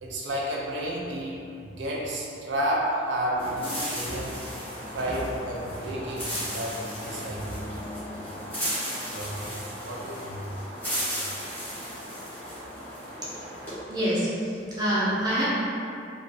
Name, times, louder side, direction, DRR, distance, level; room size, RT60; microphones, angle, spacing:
voice 1, 0.0-4.3 4.9-7.6 9.0-10.5, right 1 dB, 85° right, -3 dB, 0.5 m, -31 dB
sound 1, 3.4-13.7, equal, 10° left, 0.8 m, -35 dB
voice 2, 13.4-15.4, equal, 20° right, -10 dB, 0.6 m, -27 dB
2.5 x 2.3 x 2.6 m, 2.6 s
head